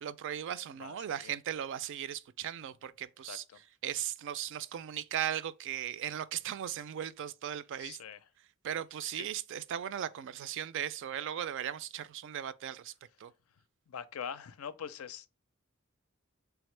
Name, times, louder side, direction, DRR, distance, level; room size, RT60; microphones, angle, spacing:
voice 1, 0.0-3.4 3.8-8.0 8.6-12.9 13.2-13.3, right 10 dB, 60° right, 0.3 m, -37 dB
voice 2, 0.7-1.3 3.3-3.6 7.8-8.3 9.2-9.3 13.9-15.3, left 7 dB, 85° left, 0.4 m, -43 dB
3.6 x 3.5 x 3.2 m
head